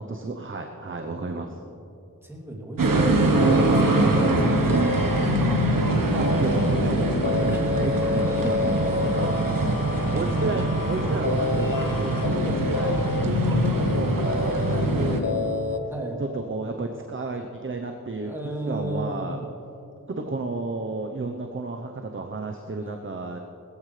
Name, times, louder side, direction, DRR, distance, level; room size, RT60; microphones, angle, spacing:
voice 1, 0.0-1.6 6.1-9.5 10.1-13.0 13.2-15.6 16.2-19.4 20.1-23.4, right 3 dB, 35° right, 4 dB, 0.8 m, -32 dB
voice 2, 2.2-5.2 7.4-9.7 12.4-12.7 15.9-16.2 18.2-19.5 22.8-23.0, right 1 dB, 5° right, -2 dB, 2.8 m, -35 dB
sound 1, 2.8-15.2, right 3 dB, 75° right, 1.2 m, -24 dB
sound 2, 3.4-15.8, left 5 dB, 80° left, 0.8 m, -28 dB
19.5 x 14.0 x 3.3 m, 2.7 s
wide cardioid pair, 75°, 33 cm